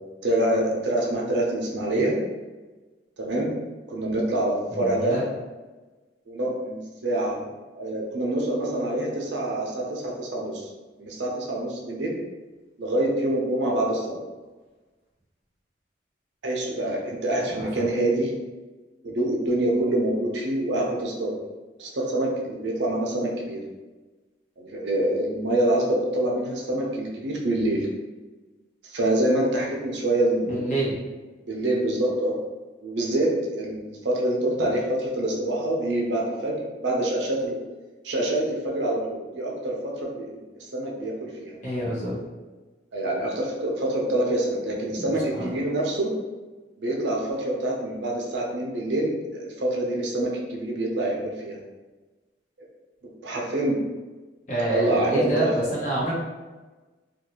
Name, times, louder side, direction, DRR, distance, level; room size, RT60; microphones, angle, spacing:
voice 1, 0.0-2.1 3.2-3.5 3.9-5.2 6.3-7.4 7.7-10.7 11.0-12.1 12.8-14.2 16.4-18.3 19.0-21.3 21.8-23.6 24.6-27.9 28.8-30.9 31.5-32.3 32.8-37.6 38.0-39.7 40.0-41.6 42.9-46.1 46.8-51.6 53.2-53.8 54.7-55.5, right 1 dB, 75° right, -1 dB, 0.6 m, -26 dB
voice 2, 4.7-5.2 17.6-17.9 30.5-31.0 34.6-34.7 41.6-42.2 44.9-45.5 54.5-56.1, right 1 dB, 45° left, -6 dB, 1.0 m, -27 dB
2.6 x 2.3 x 2.9 m, 1.2 s
head